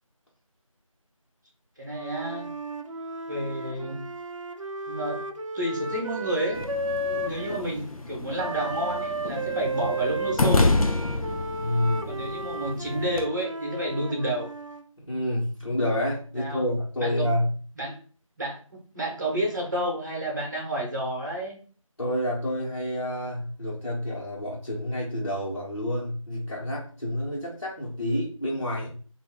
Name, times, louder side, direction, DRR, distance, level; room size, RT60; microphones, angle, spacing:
voice 1, 1.8-2.5 3.3-4.0 4.9-5.2 5.5-6.6 7.0-10.7 12.1-14.5 16.4-16.7 17.0-17.3 17.7-18.0 18.4-21.6, right 1 dB, 35° right, 0 dB, 1.0 m, -30 dB
Wind instrument woodwind instrument, 1.9-7.7 8.4-14.9, right 2 dB, 65° right, 0.5 m, -34 dB
sound 1, 6.5-13.2, left 2 dB, 80° left, 0.5 m, -29 dB
voice 2, 11.5-12.3 15.0-17.6 22.0-28.9, left 1 dB, 50° left, -9 dB, 1.2 m, -29 dB
2.8 x 2.5 x 3.6 m, 0.41 s
figure-of-eight pair, 175°, 18 cm